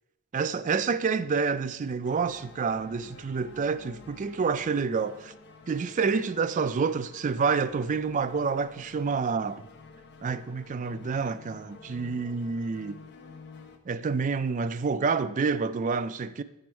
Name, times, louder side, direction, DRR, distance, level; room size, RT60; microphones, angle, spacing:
voice 1, 0.3-5.3 5.7-9.7 10.2-13.0 13.9-16.4, right 5 dB, 35° right, 0.3 m, -28 dB
sound 1, 2.0-13.8, left 4 dB, 50° left, 0.7 m, -50 dB
7.9 x 6.1 x 4.5 m
head